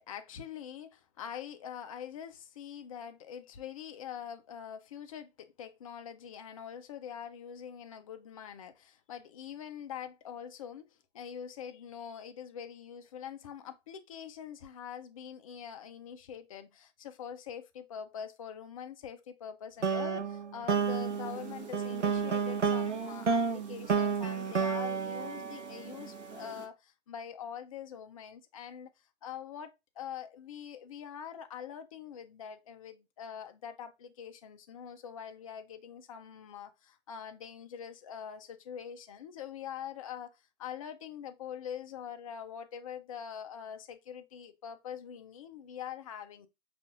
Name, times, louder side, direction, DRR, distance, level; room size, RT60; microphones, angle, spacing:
voice 1, 0.0-28.9 29.2-46.5, left 8 dB, 30° left, 0.4 m, -44 dB
sound 1, 19.8-26.2, right 5 dB, 85° right, 0.7 m, -31 dB
sound 2, 20.7-26.7, right 8 dB, 35° right, 1.0 m, -48 dB
6.5 x 2.5 x 2.4 m
figure-of-eight pair, 120°, 35 cm